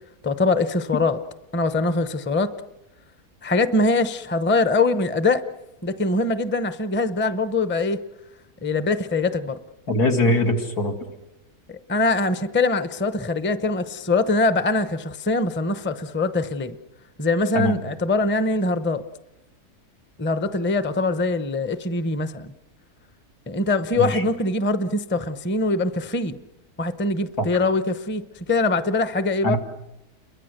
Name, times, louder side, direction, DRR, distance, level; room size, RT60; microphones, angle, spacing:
voice 1, 0.2-1.2 1.5-2.5 3.4-5.4 5.8-8.0 8.6-9.6 11.7-16.8 17.2-19.0 20.2-22.5 23.5-26.4 26.8-29.6, left 3 dB, 10° left, 12 dB, 0.5 m, -23 dB
voice 2, 9.9-10.9 17.5-17.8 24.0-24.2 27.4-27.5 29.4-29.6, left 1 dB, 90° left, 3 dB, 2.9 m, -21 dB
29.5 x 23.0 x 6.6 m, 0.95 s
omnidirectional pair, 1.6 m